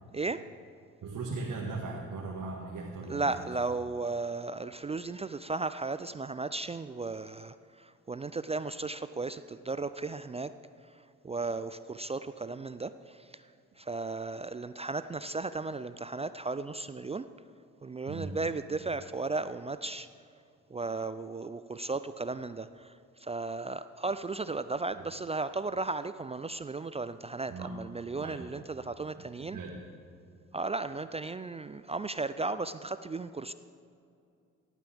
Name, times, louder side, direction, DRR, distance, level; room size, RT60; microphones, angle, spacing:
voice 1, 0.1-0.4 3.1-10.5 10.9-13.4 13.8-17.3 17.8-20.1 20.7-22.9 23.2-29.6 30.5-33.5, right 3 dB, 20° right, 13 dB, 0.3 m, -35 dB
voice 2, 1.0-3.4 18.0-18.4 27.5-27.8 28.2-28.5 29.4-29.8, right 3 dB, 55° right, -2 dB, 1.8 m, -38 dB
18.0 x 9.1 x 3.5 m, 2.5 s
hypercardioid pair, 45°, 37 cm